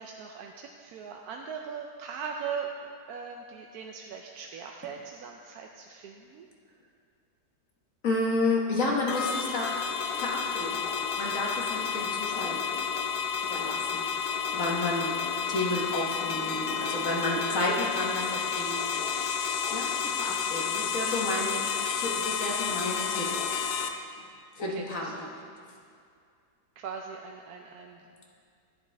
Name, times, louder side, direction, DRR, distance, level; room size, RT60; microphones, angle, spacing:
voice 1, 0.0-6.5 24.7-24.9 25.1-25.2 26.8-28.0, right 6 dB, 75° right, 2 dB, 1.1 m, -40 dB
voice 2, 8.0-9.7 10.2-10.9 11.1-12.6 13.5-15.2 15.5-18.8 19.7-23.3 24.6-25.3, left 2 dB, 55° left, -2 dB, 1.5 m, -31 dB
sound 1, 9.1-23.9, left 6 dB, 80° left, 1.1 m, -31 dB
11.0 x 10.0 x 3.3 m, 2.3 s
omnidirectional pair, 1.7 m